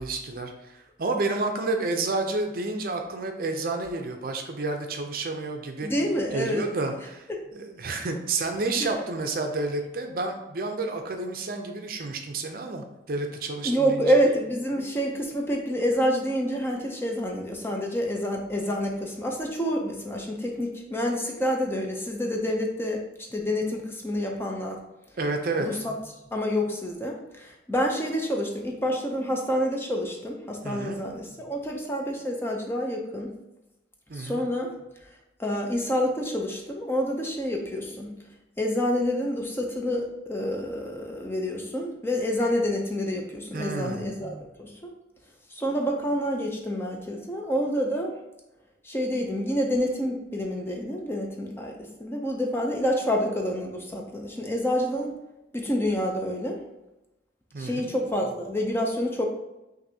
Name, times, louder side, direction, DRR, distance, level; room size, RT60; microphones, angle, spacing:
voice 1, 0.0-5.9 6.3-14.1 25.2-25.7 30.6-31.0 34.1-34.5 43.5-44.1 57.5-57.9, right 3 dB, 50° right, 4 dB, 0.5 m, -30 dB
voice 2, 5.8-6.7 8.8-8.9 13.6-24.8 25.6-25.9 26.3-33.3 34.1-34.7 35.4-38.1 38.6-44.9 45.5-48.1 48.8-55.1 55.5-56.6 57.6-59.3, equal, 15° left, 0 dB, 0.5 m, -28 dB
5.8 x 2.6 x 2.7 m, 0.96 s
head